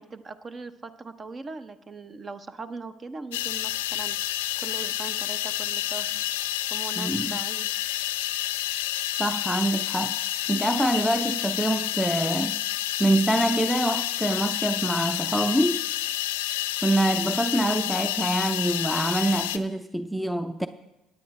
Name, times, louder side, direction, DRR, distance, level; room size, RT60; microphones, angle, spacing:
voice 1, 0.0-6.2 6.7-7.7, right 4 dB, 35° right, 0.9 m, -40 dB
sound 1, 3.3-19.6, left 14 dB, 80° left, 0.5 m, -29 dB
voice 2, 7.0-7.4 9.2-12.6 13.0-15.8 16.8-20.7, right 1 dB, 5° right, 0.6 m, -25 dB
17.5 x 9.8 x 3.3 m
hypercardioid pair, 60°, 0 cm